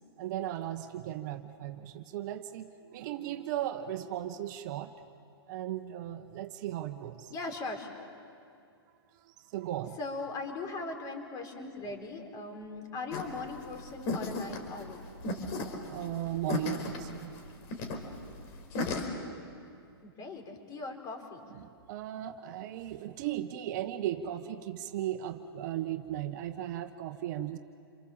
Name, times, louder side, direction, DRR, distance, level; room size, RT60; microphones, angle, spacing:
voice 1, 0.2-4.9 5.5-7.3 9.1-10.0 15.9-17.3 21.5-27.6, right 12 dB, 45° right, 9 dB, 1.2 m, -36 dB
voice 2, 7.3-8.1 10.0-15.1 20.0-21.5, left 3 dB, 25° left, 4 dB, 4.3 m, -39 dB
sound 1, 13.1-19.0, left 3 dB, 45° left, 4.1 m, -35 dB
28.5 x 23.0 x 7.2 m, 2.4 s
hypercardioid pair, 135°, 13 cm